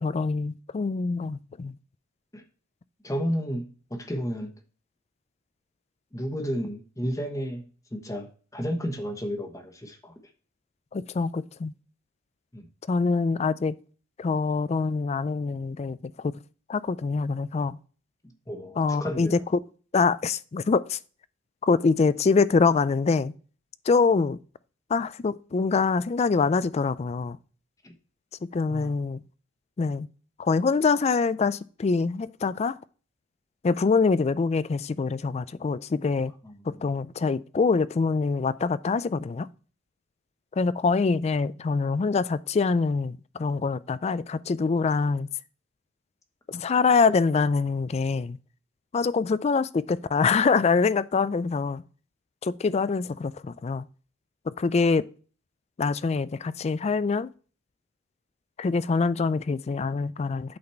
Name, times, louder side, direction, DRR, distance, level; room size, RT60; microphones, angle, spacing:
voice 1, 0.0-1.7 10.9-11.7 12.9-13.8 14.2-16.4 16.7-17.8 18.8-19.6 19.9-21.0 21.6-23.3 23.9-24.4 24.9-27.4 28.5-29.2 29.8-30.1 30.4-32.8 33.6-36.3 36.7-39.5 40.6-45.3 46.5-48.4 48.9-51.8 52.4-53.9 54.5-55.1 55.8-57.3 58.6-60.6, left 4 dB, 30° left, 0.3 m, -25 dB
voice 2, 3.0-4.5 6.1-10.1 12.5-12.7 18.2-19.3 27.8-27.9 28.7-28.9 36.4-36.9, equal, 15° left, 1.1 m, -32 dB
8.6 x 4.1 x 4.4 m
head